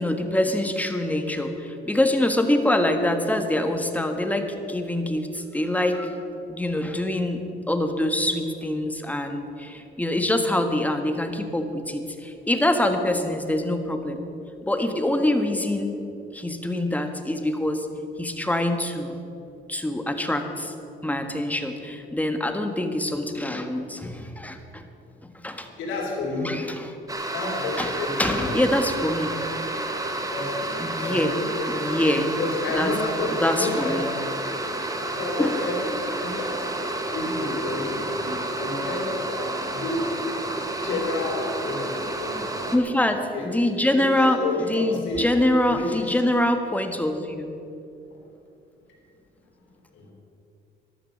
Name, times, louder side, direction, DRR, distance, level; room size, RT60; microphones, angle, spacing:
voice 1, 0.0-6.2 6.5-14.2 14.6-15.9 16.3-17.9 18.2-19.2 19.7-20.7 21.0-24.9 25.2-25.7 26.4-26.9 27.8-27.9 28.2-29.3 30.8-31.3 31.7-32.3 32.7-32.9 33.4-34.1 35.4-35.5 42.7-47.5, left 1 dB, 10° left, 6 dB, 1.5 m, -25 dB
voice 2, 25.8-26.6 27.3-28.5 30.3-31.8 32.4-34.0 35.1-36.0 36.2-36.6 37.1-40.1 40.8-41.9 42.2-42.7 43.3-43.5 43.9-45.2 45.6-46.1 49.9-50.1, left 3 dB, 80° left, -3 dB, 3.5 m, -30 dB
sound 1, 27.1-42.8, right 2 dB, 15° right, 1.7 m, -30 dB
14.0 x 11.5 x 6.5 m, 2.8 s
cardioid pair, 90°, 20 cm